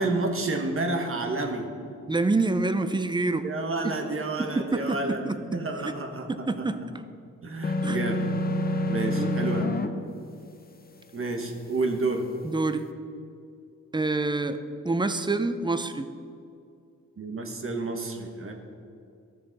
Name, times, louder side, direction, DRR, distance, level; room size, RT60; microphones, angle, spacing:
voice 1, 0.0-1.7 3.4-5.2 5.5-6.6 7.4-8.3 8.7-9.7 11.1-12.3 17.2-18.5, right 2 dB, 40° right, 3 dB, 1.2 m, -30 dB
voice 2, 2.1-3.5 4.4-5.4 5.8-5.9 6.3-6.8 7.8-8.0 9.0-9.4 12.4-12.9 13.9-16.1, right 3 dB, 15° right, 10 dB, 0.5 m, -27 dB
sound 1, 7.6-9.9, left 1 dB, 30° left, 0.6 m, -27 dB
15.0 x 6.7 x 4.0 m, 2.5 s
wide cardioid pair, 115°, 32 cm